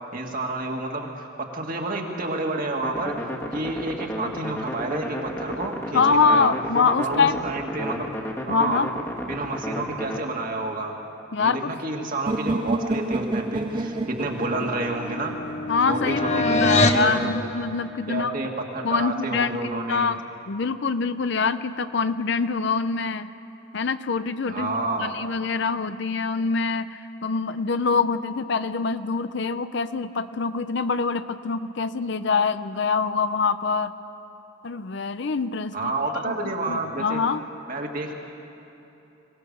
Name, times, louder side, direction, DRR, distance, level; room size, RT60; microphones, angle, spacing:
voice 1, 0.1-3.2 3.5-6.5 7.0-8.1 8.5-8.8 9.2-11.0 11.4-15.3 15.9-17.4 18.1-20.1 24.5-25.1 35.7-37.2 37.7-38.1, right 2 dB, 45° right, 1 dB, 2.1 m, -29 dB
sound 1, 2.8-10.2, equal, 15° left, 1.5 m, -32 dB
voice 2, 5.9-7.4 8.5-8.9 11.3-11.7 15.7-18.3 18.8-23.3 23.7-33.9 34.6-35.9 36.2-37.4, left 4 dB, 60° left, 12 dB, 0.6 m, -25 dB
sound 2, 12.3-16.2, right 2 dB, 25° right, 0.5 m, -29 dB
sound 3, 13.9-17.1, left 2 dB, 35° left, 1.1 m, -25 dB
23.5 x 18.5 x 6.9 m, 2.9 s
head